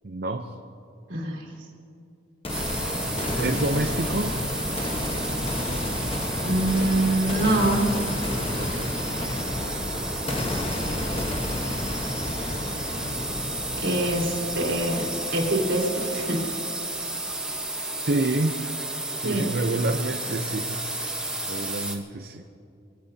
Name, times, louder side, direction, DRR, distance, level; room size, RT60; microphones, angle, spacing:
voice 1, 0.0-0.5 3.3-4.3 8.5-8.9 18.1-18.6 19.2-21.1 21.5-22.6, right 2 dB, 50° right, 5 dB, 0.7 m, -28 dB
voice 2, 1.1-1.4 6.4-7.9 13.8-15.0 15.3-16.4 19.2-19.5, right 1 dB, 65° right, -2 dB, 3.7 m, -24 dB
sound 1, 2.4-16.4, left 1 dB, 30° left, 1.2 m, -31 dB
sound 2, 2.5-22.0, right 2 dB, 5° right, 1.0 m, -32 dB
24.0 x 17.0 x 2.8 m, 2.5 s
head